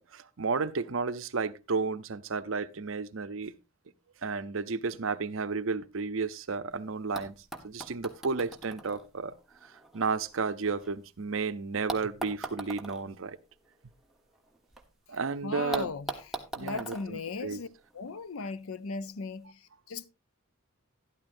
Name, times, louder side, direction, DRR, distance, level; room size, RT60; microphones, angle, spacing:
voice 1, 0.0-3.5 4.2-7.3 7.6-9.3 9.6-13.4 15.1-15.9 16.5-17.6, right 4 dB, 70° right, 0.7 m, -32 dB
sound 1, 6.7-6.8 7.2-11.2 11.9-14.8 15.1-15.2 15.7-18.1 19.1-19.2, right 2 dB, ahead, 1.1 m, -42 dB
voice 2, 15.4-16.3 16.6-17.7 17.9-20.1, left 4 dB, 85° left, 0.6 m, -37 dB
12.5 x 11.5 x 2.6 m
head